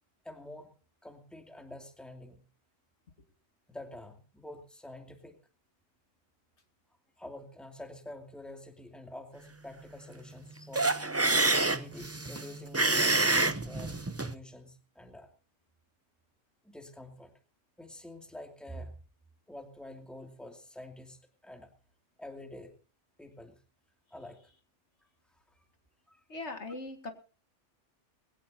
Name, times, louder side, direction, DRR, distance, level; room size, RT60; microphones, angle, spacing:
voice 1, 0.2-0.7 1.0-2.5 3.7-5.4 7.2-11.0 11.6-15.3 16.6-17.3 17.8-19.0 19.5-21.7 22.2-22.7 23.2-23.6 24.1-24.4 25.5-25.6 26.1-26.2, left 1 dB, ahead, 3 dB, 2.4 m, -47 dB
sound 1, 10.7-14.3, right 2 dB, 15° right, 0.6 m, -27 dB
voice 2, 26.3-27.1, left 2 dB, 65° left, 6 dB, 2.2 m, -39 dB
21.0 x 17.5 x 2.8 m, 0.35 s
omnidirectional pair, 1.3 m